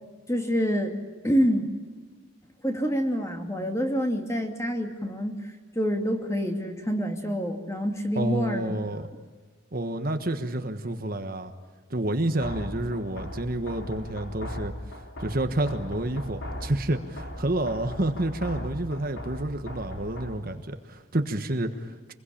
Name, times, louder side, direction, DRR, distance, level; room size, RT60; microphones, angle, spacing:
voice 1, 0.3-0.9 1.2-1.7 2.6-8.7, equal, 15° left, 4 dB, 2.4 m, -27 dB
voice 2, 8.1-9.1 9.7-11.5 11.9-14.7 15.2-22.1, right 1 dB, 45° right, 7 dB, 1.4 m, -29 dB
sound 1, 12.4-20.4, equal, 55° left, 3.8 m, -38 dB
26.5 x 22.0 x 8.7 m, 1.4 s
head